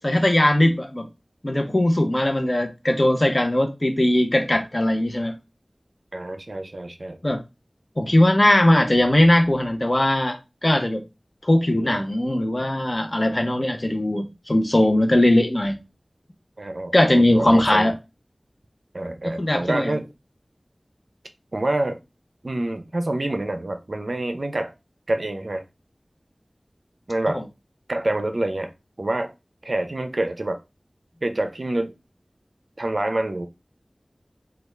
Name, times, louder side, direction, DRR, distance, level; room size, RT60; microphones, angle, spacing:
voice 1, 0.0-1.1 1.4-5.3 7.2-7.4 8.0-11.0 11.4-15.8 16.9-18.0 19.2-20.0 27.3-27.4, left 1 dB, 40° left, 0.7 m, -20 dB
voice 2, 6.1-7.2 11.7-12.0 16.6-17.9 18.9-20.0 21.5-22.0 22.4-24.7 25.1-25.6 27.1-27.4 27.9-28.7 29.0-29.3 29.6-30.6 31.2-31.9 32.8-33.5, right 1 dB, 65° right, 0.4 m, -27 dB
3.4 x 2.3 x 3.1 m
wide cardioid pair, 50°, 0 cm